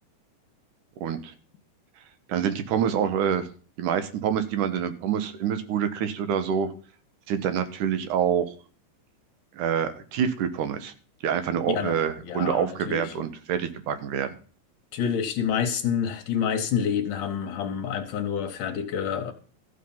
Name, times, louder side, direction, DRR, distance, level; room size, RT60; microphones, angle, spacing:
voice 1, 1.0-1.3 2.3-3.5 3.8-6.7 7.3-8.5 9.5-10.9 11.2-14.4, right 8 dB, 75° right, 10 dB, 2.7 m, -26 dB
voice 2, 11.7-13.1 14.9-19.3, left 8 dB, 75° left, 5 dB, 2.6 m, -28 dB
14.0 x 6.8 x 7.1 m, 0.40 s
omnidirectional pair, 3.8 m